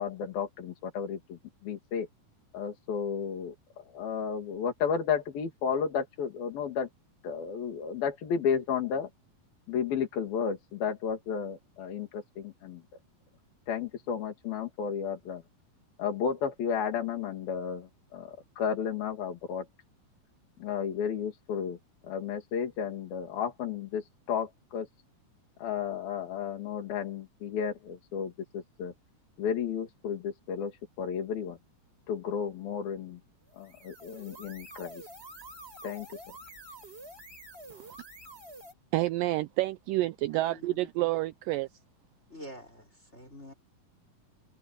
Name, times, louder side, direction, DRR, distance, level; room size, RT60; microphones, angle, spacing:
voice 1, 0.0-2.1 2.5-6.9 7.2-9.1 9.7-12.8 13.7-15.4 16.0-19.7 20.6-21.8 22.0-24.9 25.6-28.9 29.4-31.6 32.1-33.2 33.6-35.0 35.8-36.2, left 7 dB, 70° left, 4.4 m, -33 dB
sound 1, 33.5-38.7, right 1 dB, 15° right, 6.3 m, -48 dB
voice 2, 38.9-41.7, right 17 dB, 85° right, 2.0 m, -29 dB
voice 3, 40.3-40.9 42.3-43.5, equal, 15° left, 4.7 m, -47 dB
omnidirectional pair, 4.3 m